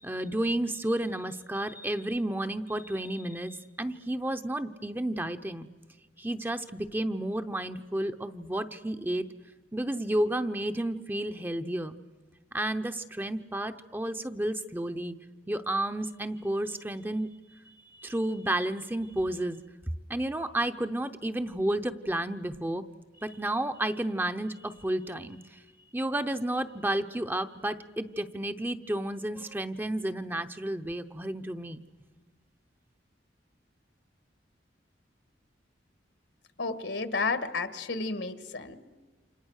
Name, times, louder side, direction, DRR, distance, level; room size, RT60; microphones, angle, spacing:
voice 1, 0.0-5.7 6.2-9.3 9.7-11.9 12.5-15.1 15.5-17.3 17.7-19.6 20.1-22.8 23.2-25.6 25.9-31.8, right 1 dB, 10° right, 8 dB, 0.7 m, -31 dB
voice 2, 36.6-38.8, left 3 dB, 75° left, 11 dB, 1.7 m, -31 dB
29.0 x 26.5 x 6.5 m, 1.4 s
head